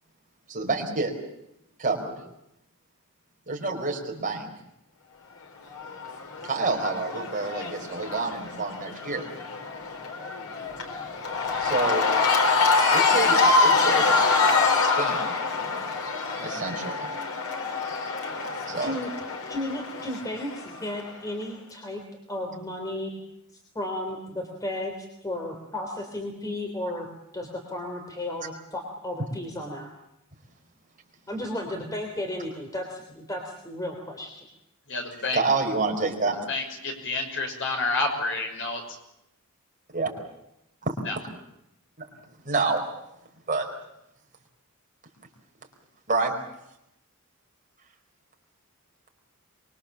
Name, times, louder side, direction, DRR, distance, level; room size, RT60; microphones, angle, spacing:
voice 1, 0.5-1.1 1.8-2.1 3.5-4.5 6.4-9.3 11.6-12.0 12.9-14.1 14.8-15.2 16.4-17.1 18.7-18.9 35.3-36.4 39.9-40.1 40.8-40.9 42.0-42.1 42.4-42.8 43.5-43.7 46.1-46.3, right 3 dB, 40° right, 2 dB, 4.8 m, -28 dB
Cheering / Crowd, 5.7-21.0, left 4 dB, 80° left, 4.1 m, -25 dB
voice 2, 19.5-22.0 22.3-23.1 23.7-24.9 25.2-27.1 27.3-29.9 31.3-34.5, left 1 dB, 15° left, 3 dB, 3.4 m, -34 dB
voice 3, 34.9-35.4 36.5-39.0 41.1-41.2, left 3 dB, 60° left, 3 dB, 6.1 m, -29 dB
24.5 x 23.5 x 7.3 m, 0.83 s
head